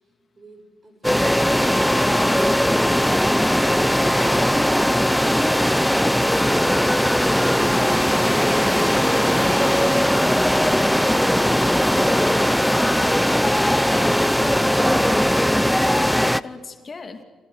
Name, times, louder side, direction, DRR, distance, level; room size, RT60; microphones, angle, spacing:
voice 1, 0.4-2.8, right 3 dB, 40° right, 7 dB, 6.5 m, -46 dB
sound 1, 1.0-16.4, equal, 5° left, 0.7 m, -19 dB
voice 2, 16.0-17.2, left 4 dB, 40° left, 7 dB, 2.6 m, -41 dB
26.0 x 18.0 x 8.0 m, 1.5 s
supercardioid pair, 55°, 0 cm